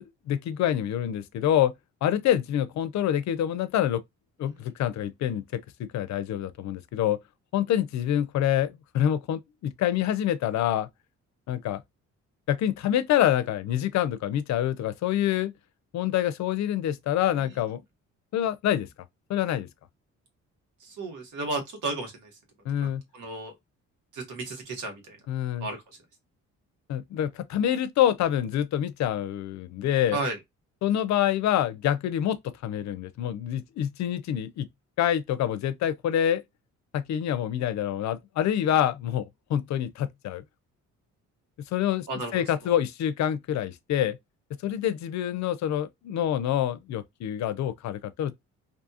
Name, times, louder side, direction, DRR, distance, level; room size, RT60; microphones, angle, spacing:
voice 1, 0.0-1.7 2.0-4.0 4.4-7.2 7.5-10.9 11.5-11.8 12.5-15.5 15.9-17.8 18.3-18.9 19.3-19.7 22.7-23.0 25.3-25.7 26.9-30.2 30.8-34.7 35.0-36.4 36.9-40.4 41.7-42.1 42.3-44.2 44.6-48.3, left 11 dB, 65° left, 0.5 m, -26 dB
voice 2, 20.8-22.3 22.8-23.5 24.1-25.2 25.5-25.8 30.1-30.4 42.1-42.8, right 2 dB, 80° right, 1.3 m, -34 dB
2.6 x 2.3 x 2.7 m
cardioid pair, 90°, 30 cm